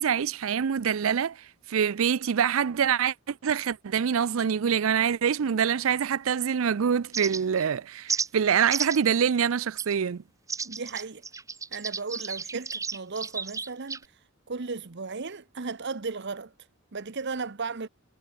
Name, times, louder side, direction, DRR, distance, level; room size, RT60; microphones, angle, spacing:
voice 1, 0.0-1.4 1.7-10.2, right 7 dB, 75° right, 0.5 m, -25 dB
sound 1, 7.1-7.6 8.1-8.3 8.7-9.1 9.8-9.9 10.5-14.0, right 5 dB, 15° right, 1.1 m, -32 dB
voice 2, 10.6-11.2 11.7-14.0 14.5-16.5 16.9-17.9, right 4 dB, 55° right, 0.9 m, -35 dB
head